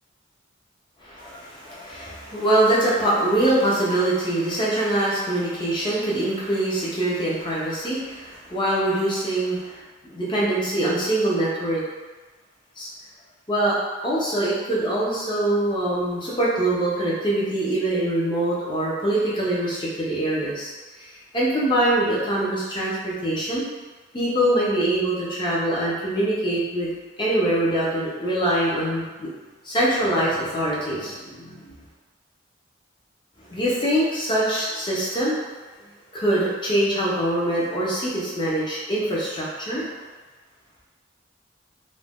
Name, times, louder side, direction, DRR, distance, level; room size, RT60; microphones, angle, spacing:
voice 1, 1.0-11.8 12.8-12.9 13.5-13.8 14.0-23.7 24.1-26.9 27.2-29.3 29.6-31.7 33.4-35.4 36.1-39.8, right 1 dB, 25° left, -7 dB, 0.7 m, -24 dB
2.6 x 2.2 x 3.4 m, 1.3 s
head